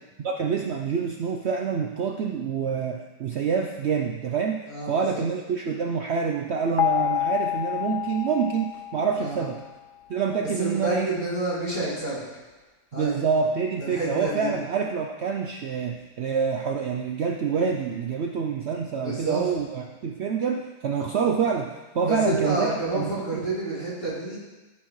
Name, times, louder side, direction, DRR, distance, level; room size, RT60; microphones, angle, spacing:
voice 1, 0.2-4.6 4.9-9.6 10.1-11.1 12.9-22.7 22.9-23.4, right 6 dB, 85° right, 2 dB, 0.5 m, -27 dB
voice 2, 4.7-5.3 9.2-9.5 10.6-12.2 12.9-13.2 13.8-14.5 19.0-19.4 22.0-24.4, right 2 dB, 45° left, -10 dB, 3.9 m, -29 dB
sound 1, 6.8-9.7, left 12 dB, 75° left, 1.1 m, -28 dB
14.5 x 5.9 x 3.1 m, 1.2 s
omnidirectional pair, 1.8 m